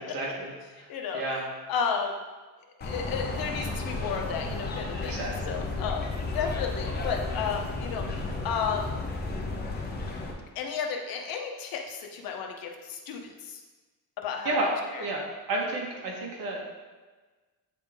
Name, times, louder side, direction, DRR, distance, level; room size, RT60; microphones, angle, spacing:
voice 1, 0.0-1.4 5.1-5.5 14.4-14.7 15.0-16.7, right 2 dB, 70° right, -2 dB, 1.5 m, -32 dB
voice 2, 0.9-1.2 1.7-2.1 2.8-5.2 5.4-9.0 10.5-13.6 14.2-14.6 14.9-15.0, left 6 dB, 70° left, 2 dB, 0.9 m, -33 dB
sound 1, 2.8-10.3, left 3 dB, 25° left, 0.8 m, -33 dB
8.5 x 3.6 x 3.6 m, 1.3 s
cardioid pair, 160°, 37 cm